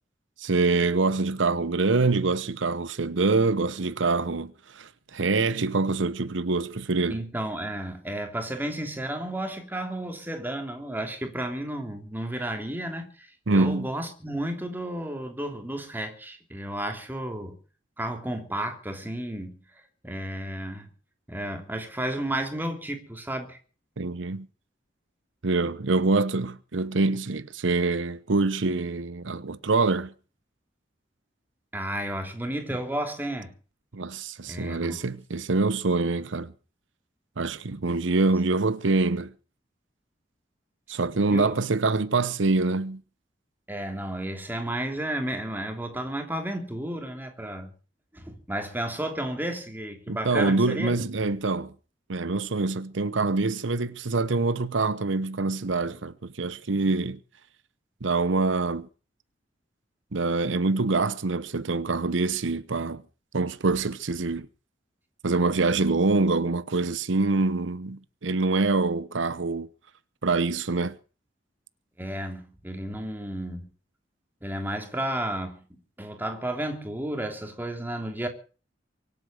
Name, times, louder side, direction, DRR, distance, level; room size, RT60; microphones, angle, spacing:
voice 1, 0.4-7.2 13.5-13.9 24.0-24.5 25.4-30.1 33.9-36.5 37.4-39.3 40.9-43.0 50.1-51.7 52.1-57.2 58.0-58.9 60.1-63.0 63.3-64.5 65.2-69.7 70.2-71.0, right 3 dB, 90° right, 0.9 m, -25 dB
voice 2, 7.1-17.6 18.0-19.6 20.0-20.9 21.3-23.6 31.7-33.5 34.5-35.0 41.3-41.6 43.7-47.7 48.1-50.9 72.0-73.7 74.4-75.6 76.0-78.3, right 1 dB, 10° right, 3.0 m, -32 dB
24.0 x 8.5 x 6.6 m
head